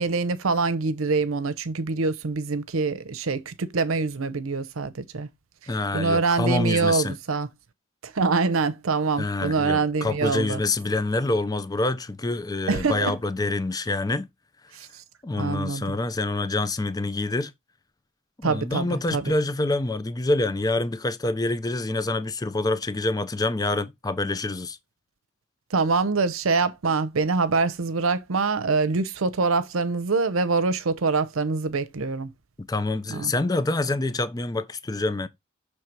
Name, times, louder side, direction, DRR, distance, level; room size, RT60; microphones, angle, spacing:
voice 1, 0.0-5.3 5.9-7.5 8.0-10.6 12.7-13.1 14.7-15.0 15.4-16.0 18.4-19.2 25.7-32.3 33.1-33.3, right 4 dB, 85° right, 0.7 m, -25 dB
voice 2, 5.7-7.2 9.2-14.3 15.2-17.5 18.4-24.8 32.6-35.3, left 2 dB, 20° left, 0.5 m, -26 dB
6.5 x 3.2 x 4.5 m
head